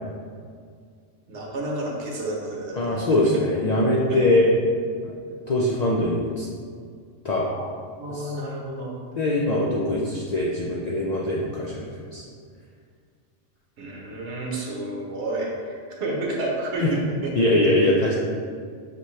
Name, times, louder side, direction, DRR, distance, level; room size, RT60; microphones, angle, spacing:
voice 1, 1.3-3.4 4.1-4.2 7.4-7.6 8.0-8.9 13.8-15.7 16.0-17.3, right 1 dB, 70° right, -2 dB, 1.1 m, -30 dB
voice 2, 2.7-4.5 5.0-5.1 5.5-6.5 7.2-7.5 8.1-8.3 9.2-12.2 16.8-16.9 17.4-18.1, left 1 dB, 60° left, -4 dB, 0.4 m, -22 dB
6.0 x 2.7 x 3.1 m, 2.1 s
omnidirectional pair, 1.2 m